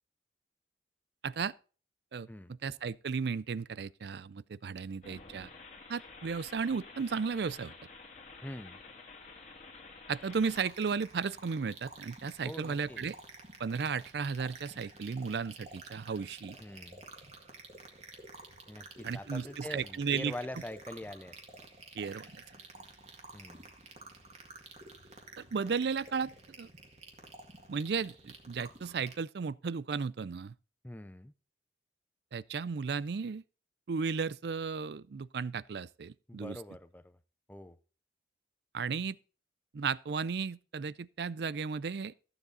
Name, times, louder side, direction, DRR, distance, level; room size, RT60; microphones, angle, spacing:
voice 1, 1.2-1.5 2.1-5.5 5.9-7.7 10.1-13.2 13.6-16.6 19.0-20.3 21.9-22.4 25.4-26.3 26.6-26.7 27.7-30.5 32.3-33.4 33.9-36.6 38.7-39.2 39.7-42.1, right 5 dB, 65° right, 0.4 m, -34 dB
sound 1, 5.0-10.6, left 3 dB, 40° left, 2.0 m, -51 dB
voice 2, 8.4-8.8 12.4-13.0 16.6-17.0 18.7-21.4 23.3-23.7 30.8-31.3 36.3-37.2 37.5-37.8, left 1 dB, 10° left, 0.5 m, -44 dB
sound 2, 10.4-29.2, right 3 dB, 35° right, 1.9 m, -51 dB
14.5 x 7.3 x 4.0 m
head